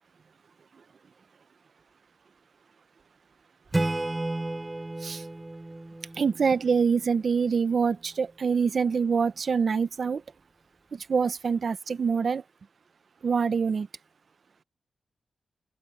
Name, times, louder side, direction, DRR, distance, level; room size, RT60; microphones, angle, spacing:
Acoustic guitar / Strum, 3.7-7.3, right 2 dB, 20° right, 3.5 m, -32 dB
voice 1, 6.2-10.2 10.9-12.4 13.2-13.9, right 5 dB, 60° right, 0.9 m, -25 dB
open air
wide cardioid pair, 85°, 0 cm